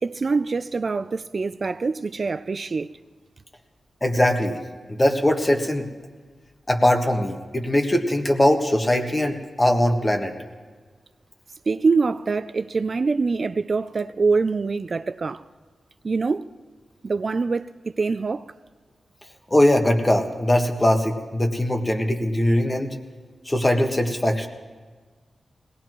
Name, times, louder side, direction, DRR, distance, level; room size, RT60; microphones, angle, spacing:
voice 1, 0.0-3.0 11.7-15.4 16.0-16.5 17.0-18.5, right 4 dB, 55° right, 0.3 m, -24 dB
voice 2, 4.0-4.6 4.9-5.8 6.7-10.3 19.5-22.9 23.4-24.5, left 1 dB, 25° left, 1.6 m, -21 dB
21.5 x 18.0 x 3.1 m
cardioid pair, 65°, 0 cm